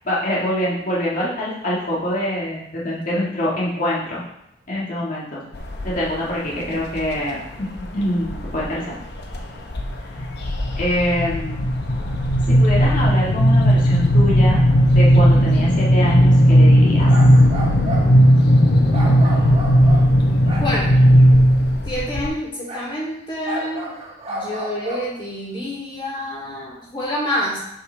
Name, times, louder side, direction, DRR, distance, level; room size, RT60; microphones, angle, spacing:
voice 1, 0.0-4.2 4.7-5.4 5.8-9.0 10.8-11.7 12.5-14.6 14.9-17.1, equal, 45° left, -6 dB, 1.8 m, -24 dB
sound 1, 5.5-6.1 6.6-7.1 7.8-8.6 9.0-9.4 9.7-22.3, equal, 65° left, 0.9 m, -15 dB
sound 2, 17.0-18.1 18.9-20.9 22.7-22.9 23.5-25.1, right 1 dB, 35° right, 1.3 m, -31 dB
voice 2, 21.8-23.9 24.3-27.6, left 1 dB, 25° left, -6 dB, 2.9 m, -27 dB
7.3 x 5.4 x 3.3 m, 0.79 s
head